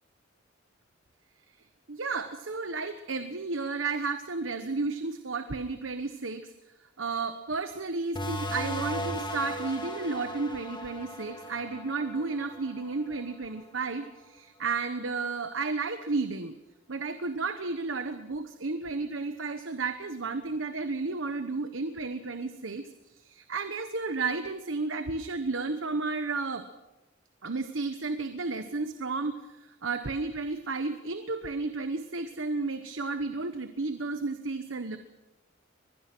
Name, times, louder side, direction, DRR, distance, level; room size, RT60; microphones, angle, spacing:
voice 1, 1.9-6.5 7.0-16.5 16.9-26.7 27.4-35.0, right 3 dB, 80° right, 9 dB, 1.1 m, -32 dB
sound 1, 8.1-13.4, equal, 25° left, 2.0 m, -37 dB
24.0 x 21.0 x 6.1 m, 1.1 s
head